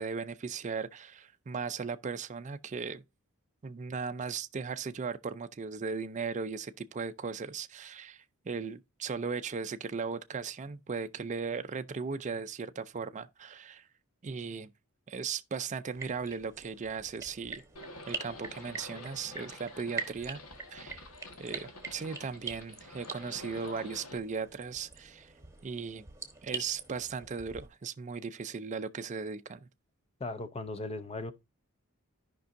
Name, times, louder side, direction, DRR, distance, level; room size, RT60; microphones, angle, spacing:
voice 1, 0.0-3.0 3.6-13.9 14.2-14.7 15.1-17.6 18.1-20.4 20.7-21.0 21.4-25.3 25.6-26.1 26.4-29.6, right 5 dB, 35° right, 0.4 m, -37 dB
sound 1, 15.9-27.7, right 4 dB, 15° right, 1.2 m, -45 dB
Livestock farm animals working animals, 17.8-24.2, left 2 dB, 90° left, 1.6 m, -48 dB
voice 2, 30.2-31.3, left 2 dB, 25° left, 0.6 m, -37 dB
14.5 x 5.3 x 2.6 m
head